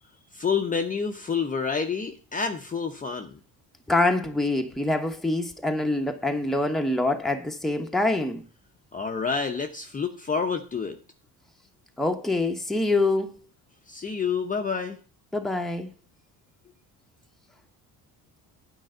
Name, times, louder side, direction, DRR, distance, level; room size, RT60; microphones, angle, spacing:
voice 1, 0.3-3.4 8.9-11.0 13.9-15.0, left 5 dB, 20° left, 0.8 m, -28 dB
voice 2, 3.9-8.4 12.0-13.4 15.3-15.9, left 2 dB, ahead, 1.0 m, -25 dB
9.2 x 4.7 x 7.7 m
cardioid pair, 125°, 38 cm